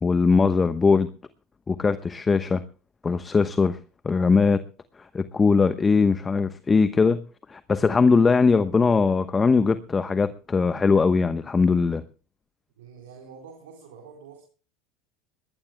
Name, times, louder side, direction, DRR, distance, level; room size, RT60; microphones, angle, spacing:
voice 1, 0.0-1.1 1.7-2.6 3.0-3.8 4.0-4.6 5.1-7.2 7.5-12.0, left 4 dB, 20° left, 12 dB, 1.0 m, -20 dB
voice 2, 12.8-14.4, right 6 dB, 80° right, 1 dB, 4.1 m, -46 dB
22.0 x 19.0 x 2.2 m, 0.36 s
hypercardioid pair, 85°, 0 cm